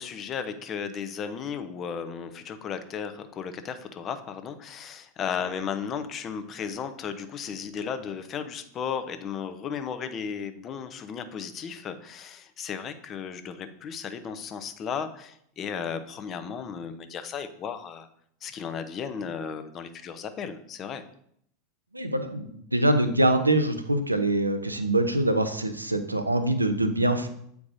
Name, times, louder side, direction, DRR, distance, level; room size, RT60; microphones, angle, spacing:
voice 1, 0.0-18.1 18.4-21.0, left 7 dB, 35° left, 10 dB, 0.7 m, -35 dB
voice 2, 21.9-22.4 22.7-27.3, right 1 dB, 90° right, 8 dB, 0.6 m, -24 dB
8.4 x 4.6 x 2.6 m, 0.68 s
figure-of-eight pair, 85°, 0 cm